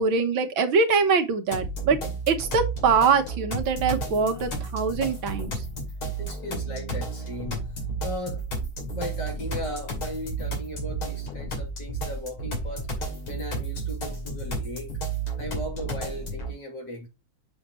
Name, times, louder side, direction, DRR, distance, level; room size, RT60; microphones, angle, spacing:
voice 1, 0.0-2.0 2.3-5.6, right 5 dB, 70° right, 1.9 m, -23 dB
sound 1, 1.5-16.5, right 2 dB, 85° left, 3.5 m, -32 dB
voice 2, 6.2-7.7 8.0-12.9 13.3-14.9 15.4-17.1, equal, 55° left, 3.5 m, -37 dB
7.2 x 6.5 x 3.0 m
omnidirectional pair, 2.3 m